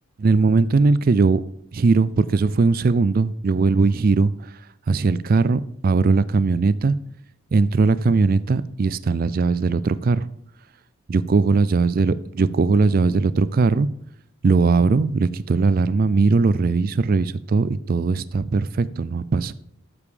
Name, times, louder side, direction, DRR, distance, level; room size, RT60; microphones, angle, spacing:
voice 1, 0.2-1.4 1.7-4.3 4.9-7.0 7.5-10.3 11.1-13.9 14.4-19.5, right 4 dB, 40° right, 16 dB, 0.3 m, -19 dB
8.4 x 7.0 x 4.9 m, 0.73 s
head